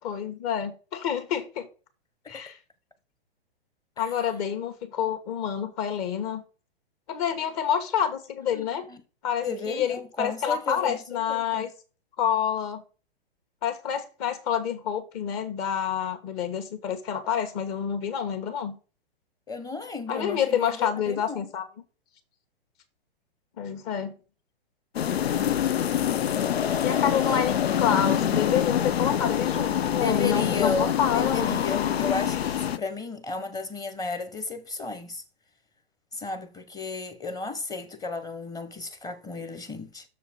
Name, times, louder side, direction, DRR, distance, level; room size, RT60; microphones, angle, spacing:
voice 1, 0.0-1.7 2.3-2.6 4.0-6.4 7.1-8.8 9.2-11.7 12.2-12.8 13.6-18.8 20.1-21.6 23.6-24.2 26.8-32.0, left 8 dB, 40° left, 1.9 m, -28 dB
voice 2, 8.5-9.0 9.4-11.7 19.5-21.5 27.0-27.2 30.0-35.2 36.1-40.0, left 4 dB, 10° left, 1.0 m, -34 dB
sound 1, 24.9-32.8, left 10 dB, 80° left, 0.6 m, -25 dB
7.2 x 6.7 x 4.4 m
hypercardioid pair, 120°, 31 cm